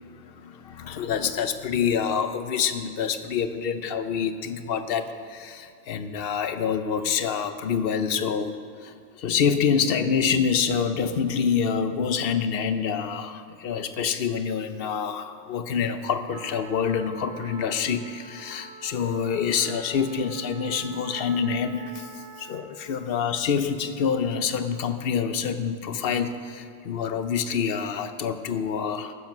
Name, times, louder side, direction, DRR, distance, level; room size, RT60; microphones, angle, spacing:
voice 1, 0.0-29.1, left 7 dB, 60° left, 10 dB, 0.9 m, -27 dB
Trumpet, 16.3-22.9, right 4 dB, 75° right, 1.1 m, -46 dB
15.0 x 9.8 x 6.0 m, 2.2 s
omnidirectional pair, 1.2 m